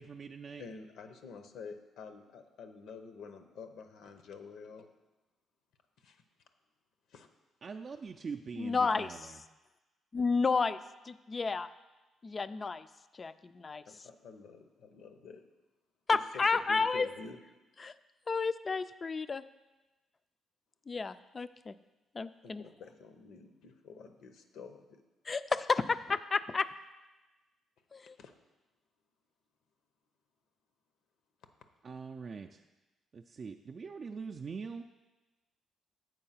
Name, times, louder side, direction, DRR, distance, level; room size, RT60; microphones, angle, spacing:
voice 1, 0.0-0.6 7.6-9.4 31.8-32.6 33.1-34.9, right 5 dB, 45° right, 3 dB, 0.3 m, -43 dB
voice 2, 0.6-4.9 6.0-6.2 7.1-7.3 13.8-15.4 16.1-17.4 22.4-25.0 28.2-28.3, left 5 dB, 80° left, 7 dB, 0.7 m, -49 dB
voice 3, 8.6-9.1 10.1-10.8 11.1-11.7 12.2-12.9 13.2-13.8 16.1-17.1 17.8-17.9 18.3-19.4 20.9-21.7 22.2-22.6 25.3-26.7 27.9-28.2, left 4 dB, 35° left, 13 dB, 0.3 m, -31 dB
7.7 x 4.5 x 5.7 m, 1.1 s
cardioid pair, 90°, 0 cm